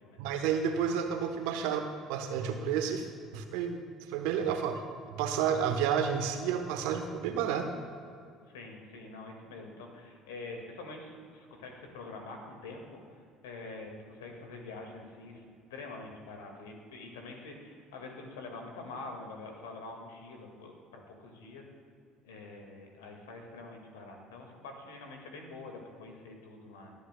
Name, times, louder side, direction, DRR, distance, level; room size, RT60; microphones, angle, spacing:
voice 1, 0.2-3.1 3.3-3.8 4.1-4.8 5.1-7.7, right 7 dB, 75° right, 6 dB, 1.0 m, -30 dB
voice 2, 8.5-13.0 13.4-21.6 22.2-26.9, left 3 dB, 80° left, 2 dB, 1.8 m, -45 dB
22.0 x 9.5 x 2.2 m, 2.3 s
hypercardioid pair, 65°, 0 cm